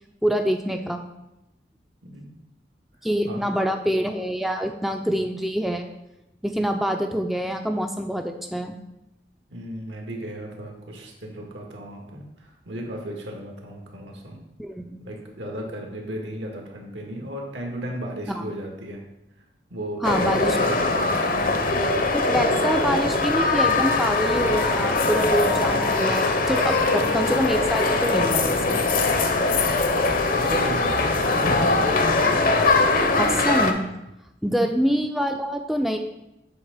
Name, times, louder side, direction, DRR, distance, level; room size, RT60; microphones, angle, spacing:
voice 1, 0.2-1.1 3.0-5.9 6.4-8.7 14.6-15.0 18.3-18.4 20.0-20.6 22.1-28.8 33.2-33.8 34.4-36.0, equal, ahead, 5 dB, 0.4 m, -25 dB
voice 2, 9.5-14.4 15.0-19.0 19.7-21.8 30.3-32.3 34.5-34.7, right 1 dB, 80° right, 1 dB, 1.7 m, -35 dB
sound 1, 20.0-33.7, left 3 dB, 50° left, 0.7 m, -21 dB
sound 2, 23.4-28.4, left 2 dB, 90° left, 1.6 m, -36 dB
7.9 x 3.7 x 6.5 m, 0.90 s
head